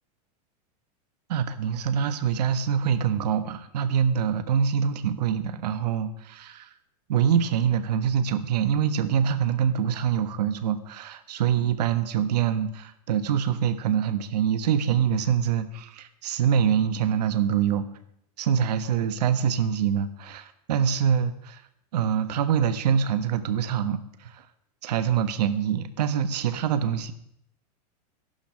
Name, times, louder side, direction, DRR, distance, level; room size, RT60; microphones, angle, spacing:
voice 1, 1.3-6.7 7.1-17.9 18.4-21.6 21.9-24.5 24.8-27.1, right 8 dB, 85° right, 10 dB, 1.3 m, -25 dB
14.0 x 11.5 x 6.3 m, 0.74 s
supercardioid pair, 170°, 20 cm